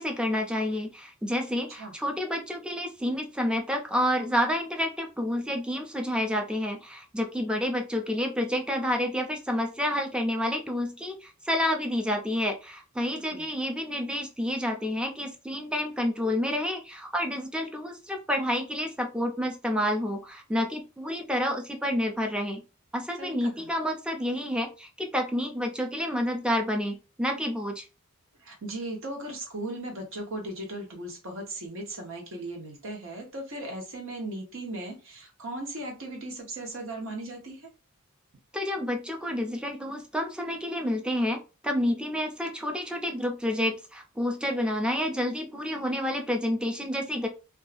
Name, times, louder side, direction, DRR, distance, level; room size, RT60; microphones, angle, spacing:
voice 1, 0.0-22.6 22.9-27.9 38.5-47.3, left 1 dB, 5° right, 3 dB, 0.4 m, -29 dB
voice 2, 13.1-13.5 23.2-23.7 28.4-37.7, right 1 dB, 65° right, 2 dB, 1.0 m, -37 dB
2.6 x 2.3 x 2.4 m, 0.31 s
head